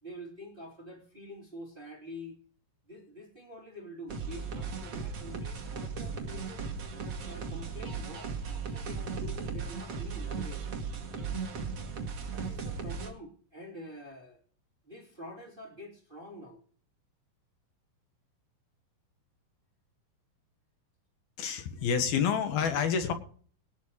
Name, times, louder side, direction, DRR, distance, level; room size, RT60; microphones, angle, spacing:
voice 1, 0.0-2.3 2.9-6.6 7.2-10.7 12.3-14.4 14.9-16.6, equal, 15° right, 0 dB, 2.6 m, -47 dB
sound 1, 4.1-13.1, right 5 dB, 50° right, 1.8 m, -37 dB
voice 2, 21.4-23.1, left 7 dB, 65° left, 7 dB, 2.8 m, -28 dB
19.0 x 6.9 x 4.8 m, 0.43 s
omnidirectional pair, 5.7 m